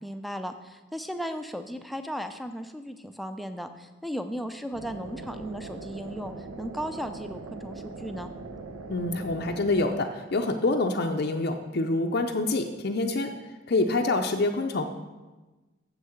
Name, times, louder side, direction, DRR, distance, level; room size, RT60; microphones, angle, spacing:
voice 1, 0.0-8.3, equal, ahead, 8 dB, 0.4 m, -36 dB
sound 1, 4.7-9.9, right 3 dB, 85° right, 0.8 m, -41 dB
voice 2, 8.9-13.3 13.7-14.8, left 2 dB, 50° left, 4 dB, 0.5 m, -26 dB
7.4 x 6.4 x 7.0 m, 1.2 s
head